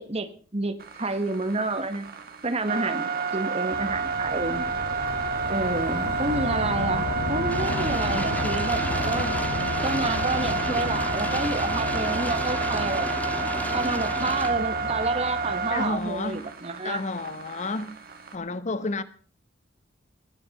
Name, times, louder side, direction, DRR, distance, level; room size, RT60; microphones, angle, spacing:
voice 1, 0.0-2.1 2.4-4.9 5.5-9.3 9.8-13.2 13.7-17.0, right 2 dB, 35° right, 1.6 m, -29 dB
sound 1, 0.8-18.4, right 4 dB, 55° right, 2.4 m, -30 dB
sound 2, 3.7-16.2, left 2 dB, 85° left, 1.3 m, -34 dB
sound 3, 7.5-14.5, left 1 dB, 10° left, 2.6 m, -33 dB
voice 2, 15.7-16.4 16.8-17.9 18.3-19.0, left 3 dB, 40° left, 1.0 m, -30 dB
21.0 x 9.8 x 5.7 m
head